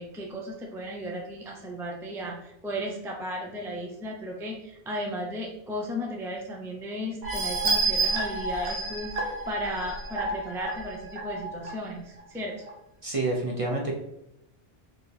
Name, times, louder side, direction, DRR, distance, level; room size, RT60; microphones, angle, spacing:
voice 1, 0.0-12.6, equal, 5° right, -1 dB, 0.4 m, -35 dB
sound 1, 7.2-11.7 12.2-12.3 12.7-12.8, right 3 dB, 75° right, 1.2 m, -29 dB
voice 2, 13.0-13.9, right 2 dB, 40° right, -1 dB, 0.7 m, -28 dB
4.5 x 2.9 x 3.3 m, 0.84 s
omnidirectional pair, 1.1 m